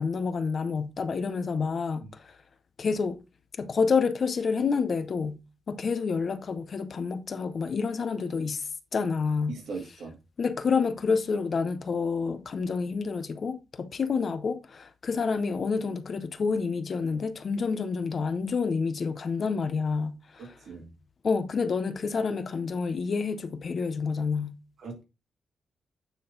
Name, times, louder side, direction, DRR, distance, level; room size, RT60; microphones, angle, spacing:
voice 1, 0.0-2.4 2.8-3.2 3.6-5.4 5.7-8.6 8.9-9.6 10.4-20.6 21.2-24.6, left 5 dB, 45° left, 0.6 m, -28 dB
voice 2, 9.5-10.2 20.4-20.9 24.8-25.0, right 4 dB, 70° right, 2.3 m, -39 dB
9.1 x 3.7 x 3.9 m
wide cardioid pair, 150°, 0 cm